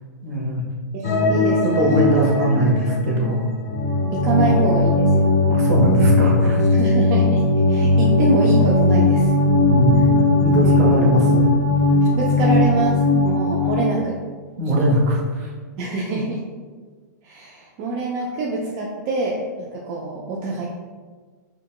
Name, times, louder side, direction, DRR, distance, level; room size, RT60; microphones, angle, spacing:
voice 1, 0.2-0.6 1.0-1.1 1.8-3.4 4.4-4.5 5.5-6.7 9.6-10.0 10.4-11.5 14.6-15.5, equal, 50° right, -2 dB, 0.8 m, -21 dB
voice 2, 0.9-2.1 4.1-5.2 6.7-7.4 7.7-9.3 10.6-11.0 12.1-14.1 15.8-16.4 17.2-20.7, right 3 dB, 30° right, -3 dB, 0.3 m, -25 dB
sound 1, 1.0-14.0, left 2 dB, 55° left, 0.5 m, -18 dB
3.9 x 2.1 x 2.3 m, 1.5 s
hypercardioid pair, 150°, 10 cm